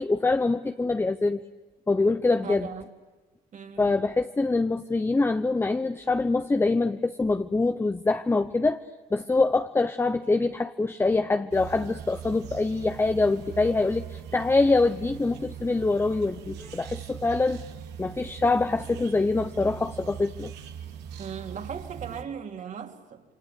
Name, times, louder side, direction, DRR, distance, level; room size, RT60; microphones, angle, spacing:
voice 1, 0.0-1.4 1.9-2.7 3.8-8.8 9.1-17.6 18.0-20.5, left 3 dB, 15° left, 0.9 m, -24 dB
voice 2, 2.4-2.9 3.5-3.9 21.2-23.2, right 7 dB, 45° right, 3.4 m, -38 dB
sound 1, 11.5-22.2, right 9 dB, 85° right, 2.6 m, -41 dB
28.5 x 24.5 x 8.5 m
cardioid pair, 110°, 17 cm